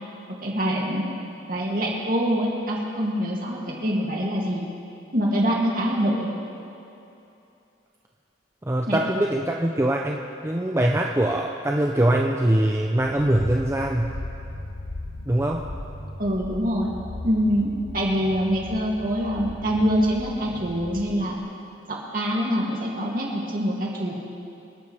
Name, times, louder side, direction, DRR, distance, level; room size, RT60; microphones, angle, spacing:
voice 1, 0.4-1.1 1.5-4.6 5.1-6.3 8.9-9.0 16.2-16.9 17.2-21.4 21.9-24.1, equal, 50° right, -3 dB, 2.7 m, -24 dB
voice 2, 8.6-14.2 15.3-15.6, right 1 dB, 15° right, 0 dB, 0.6 m, -23 dB
sound 1, 13.0-21.4, left 1 dB, 85° left, 1.7 m, -38 dB
26.5 x 12.0 x 3.5 m, 2.8 s
head